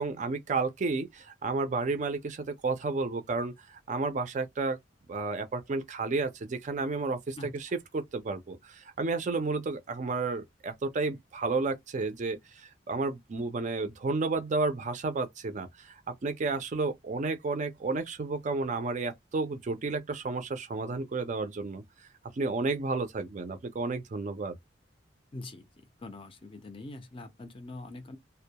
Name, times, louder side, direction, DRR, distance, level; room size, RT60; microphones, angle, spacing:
voice 1, 0.0-4.8 5.1-21.8 22.4-24.6, right 3 dB, 40° right, 0.4 m, -32 dB
voice 2, 25.3-25.7 26.0-28.2, left 2 dB, 30° left, 0.4 m, -43 dB
2.2 x 2.0 x 2.8 m
head